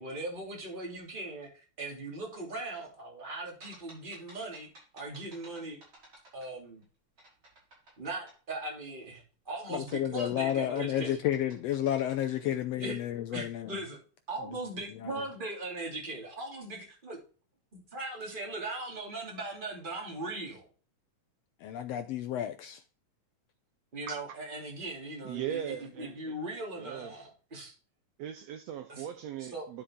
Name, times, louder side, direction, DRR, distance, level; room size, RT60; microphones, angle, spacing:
voice 1, 0.0-4.7 4.9-5.8 6.3-6.8 8.0-11.2 12.4-12.5 12.8-13.0 13.3-14.0 14.3-17.2 17.7-20.7 23.9-27.7 28.9-29.0 29.5-29.7, right 2 dB, 15° right, 2.6 m, -39 dB
sound 1, 3.6-6.8 7.2-8.4 9.9-12.5, right 1 dB, 40° right, 5.5 m, -56 dB
voice 2, 9.7-13.7 14.5-14.6 15.0-15.1 21.6-22.8, left 11 dB, 85° left, 1.4 m, -31 dB
voice 3, 25.2-26.3 26.8-27.2 28.2-29.8, right 10 dB, 85° right, 1.5 m, -39 dB
10.0 x 5.6 x 3.7 m
omnidirectional pair, 3.6 m